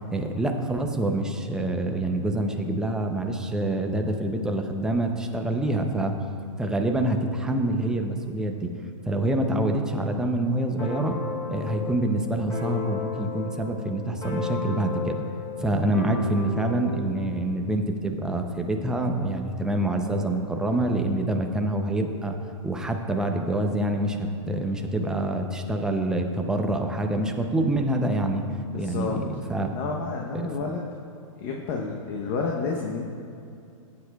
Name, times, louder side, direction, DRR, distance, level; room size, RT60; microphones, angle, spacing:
voice 1, 0.1-6.1 6.6-8.7 9.1-11.2 11.5-15.2 15.6-22.4 22.6-28.4 28.7-29.7 30.3-30.7, right 1 dB, 5° right, 3 dB, 0.5 m, -26 dB
sound 1, 10.8-17.0, left 5 dB, 20° left, 2.5 m, -34 dB
voice 2, 28.7-29.2 29.7-30.8 31.4-33.0, left 4 dB, 40° left, 0 dB, 0.9 m, -30 dB
16.0 x 8.7 x 2.3 m, 2.5 s
hypercardioid pair, 130°, 17 cm